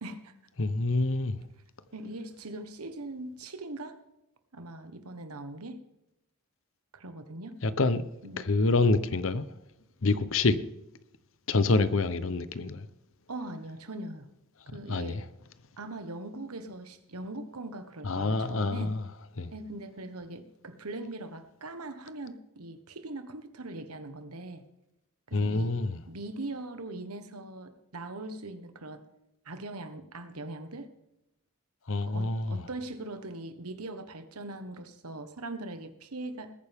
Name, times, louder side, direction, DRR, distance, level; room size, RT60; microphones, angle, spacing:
voice 1, 0.0-0.3 1.9-4.0 4.5-5.8 6.9-7.6 8.2-8.5 13.3-14.3 14.7-15.2 15.8-18.9 19.5-24.6 25.3-25.8 26.1-29.0 29.4-30.9 32.1-36.5, right 2 dB, 90° right, 1.4 m, -41 dB
voice 2, 0.6-1.4 7.6-8.0 8.4-9.4 10.0-10.5 11.5-12.9 14.9-15.2 18.0-19.0 19.4-19.5 25.3-26.0 31.9-32.6, left 3 dB, 60° left, 0.8 m, -26 dB
20.5 x 9.4 x 3.6 m
head